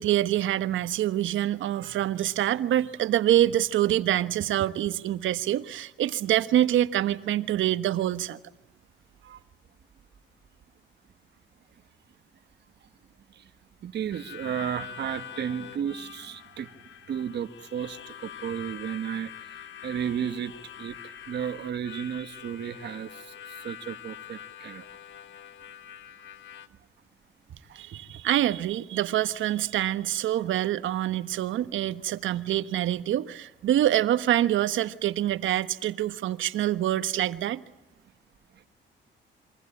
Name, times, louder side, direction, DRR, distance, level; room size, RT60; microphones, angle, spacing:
voice 1, 0.0-8.4 9.2-9.4 27.7-37.6, right 12 dB, 75° right, 1.3 m, -26 dB
voice 2, 13.8-19.6 19.8-24.9 27.5-28.2 38.5-38.6, right 8 dB, 60° right, 1.5 m, -34 dB
Harmonica, 14.1-26.7, left 9 dB, 70° left, 1.4 m, -44 dB
27.5 x 24.0 x 8.6 m
cardioid pair, 90°, 20 cm